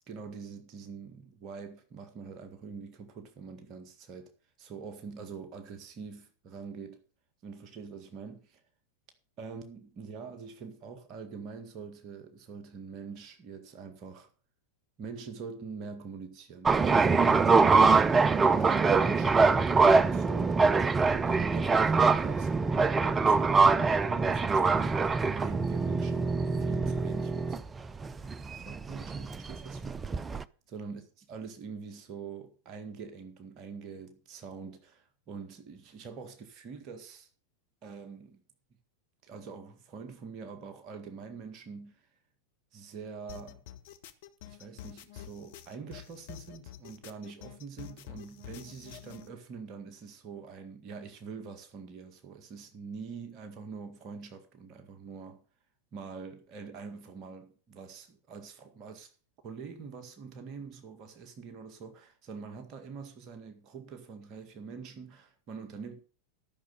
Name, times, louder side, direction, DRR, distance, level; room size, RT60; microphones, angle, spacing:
voice 1, 0.1-4.3 4.6-7.0 7.4-8.6 9.4-14.3 15.0-27.6 28.6-30.2 30.7-37.3 37.8-38.4 39.2-42.1 42.7-43.6 44.5-55.4 55.9-59.1 59.4-66.0, right 5 dB, 35° right, 1.8 m, -44 dB
sound 1, 16.7-30.4, right 4 dB, 15° right, 0.5 m, -24 dB
sound 2, 43.3-49.3, left 11 dB, 55° left, 1.3 m, -47 dB
13.0 x 6.7 x 6.8 m
figure-of-eight pair, 90°, 0 cm